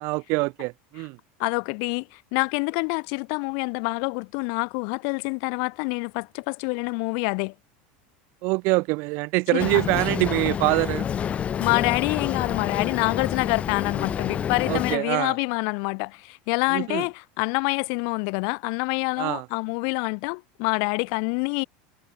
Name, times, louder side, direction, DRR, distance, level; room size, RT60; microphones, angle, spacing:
voice 1, 0.0-1.2 8.4-11.1 14.7-15.3 16.7-17.1 19.2-19.5, right 27 dB, 55° right, 0.4 m, -24 dB
voice 2, 1.4-7.5 9.5-9.8 11.6-21.6, left 40 dB or more, 65° left, 0.9 m, -26 dB
Boat Water vehicle, 9.6-15.0, left 8 dB, 25° left, 0.6 m, -28 dB
supercardioid pair, 135°, 5 cm